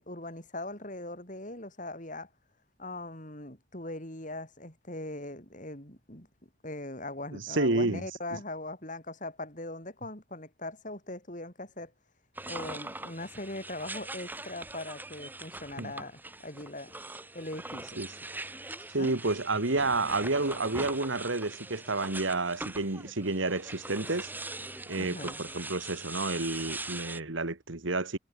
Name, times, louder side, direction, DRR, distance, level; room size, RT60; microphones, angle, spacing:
voice 1, 0.0-2.3 2.8-11.9 12.5-16.9 17.3-18.0 19.0-19.2 25.0-25.4, left 2 dB, 40° left, 5.1 m, -40 dB
voice 2, 7.3-8.0 15.8-15.9 18.0-18.1 18.9-24.3 24.9-28.2, right 2 dB, 70° right, 1.8 m, -30 dB
sound 1, 12.4-27.2, right 2 dB, 10° right, 2.8 m, -42 dB
head